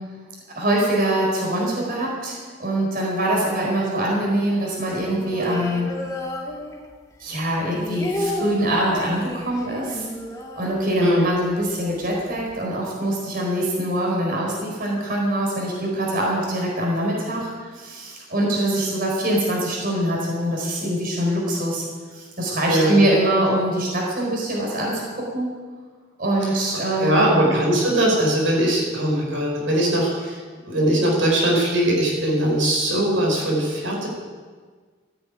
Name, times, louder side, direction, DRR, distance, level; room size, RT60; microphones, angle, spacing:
voice 1, 0.5-5.9 7.2-10.1 10.6-25.5 26.2-27.4, right 1 dB, 50° right, -2 dB, 4.6 m, -23 dB
sound 1, 5.0-7.1 7.4-11.4 11.7-11.8 12.0-12.5, left 1 dB, 15° left, 1.9 m, -32 dB
voice 2, 11.0-11.4 22.7-23.0 27.0-30.4 30.7-34.1, right 1 dB, 85° right, -2 dB, 5.1 m, -20 dB
14.5 x 9.8 x 9.4 m, 1.5 s
head